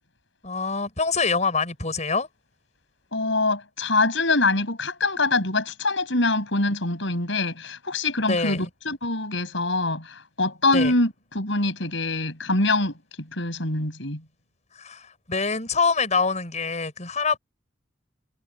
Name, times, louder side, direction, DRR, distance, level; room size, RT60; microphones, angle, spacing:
voice 1, 0.4-2.3 8.3-8.7 10.7-10.9 14.7-17.4, left 4 dB, 40° left, 6.7 m, -25 dB
voice 2, 3.1-12.9 13.3-14.2, left 2 dB, 70° left, 7.7 m, -24 dB
head